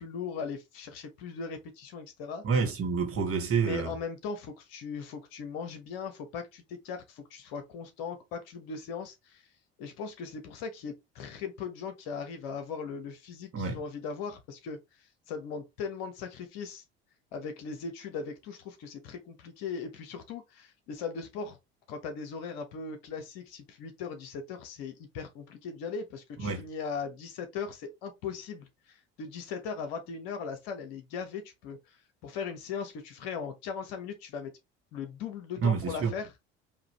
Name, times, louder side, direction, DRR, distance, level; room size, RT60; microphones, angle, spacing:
voice 1, 0.0-2.4 3.6-9.4 9.8-14.8 15.3-16.8 17.3-21.6 21.9-34.5 34.9-36.3, left 5 dB, 75° left, 1.3 m, -39 dB
voice 2, 2.4-3.9 13.5-13.8 26.4-26.7 35.6-36.1, right 5 dB, 45° right, 1.5 m, -28 dB
3.9 x 2.9 x 3.1 m
hypercardioid pair, 65°, 31 cm